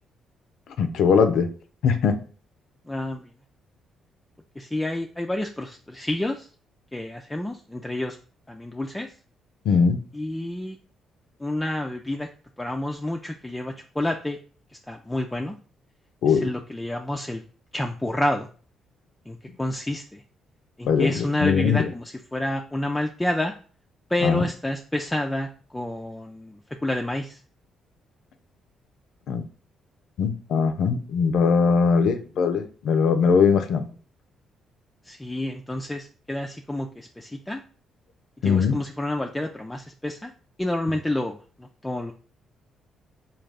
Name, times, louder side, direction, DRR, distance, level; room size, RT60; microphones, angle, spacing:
voice 1, 0.8-1.5 1.8-2.2 9.6-10.0 16.2-16.5 20.9-21.9 24.2-24.4 29.3-29.4 30.2-33.9 38.4-38.8, left 6 dB, 75° left, 8 dB, 0.4 m, -21 dB
voice 2, 2.9-3.2 4.6-6.5 6.9-8.2 8.5-9.1 10.1-10.8 11.4-12.3 12.6-14.4 14.9-15.5 16.2-17.4 17.7-18.5 19.3-20.2 20.8-23.5 24.1-27.4 35.0-37.6 38.4-40.3 40.6-42.1, left 1 dB, 10° left, 2 dB, 0.3 m, -29 dB
3.6 x 2.3 x 3.3 m, 0.40 s
cardioid pair, 90°, 0 cm